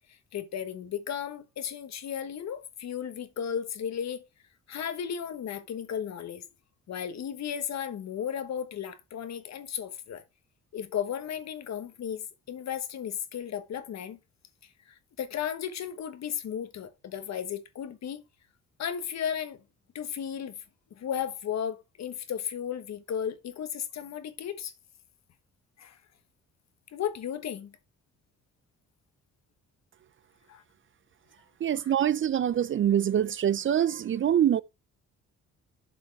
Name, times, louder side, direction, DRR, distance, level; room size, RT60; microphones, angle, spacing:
voice 1, 0.1-4.2 4.7-6.4 6.9-10.2 10.7-14.2 14.6-18.2 18.8-19.6 19.9-20.6 20.9-24.7 25.8-26.0 26.9-27.7 30.5-30.6 31.7-31.9, left 8 dB, 60° left, 1.2 m, -35 dB
voice 2, 31.6-34.6, right 10 dB, 40° right, 0.5 m, -25 dB
7.5 x 5.3 x 4.5 m
cardioid pair, 90°, 30 cm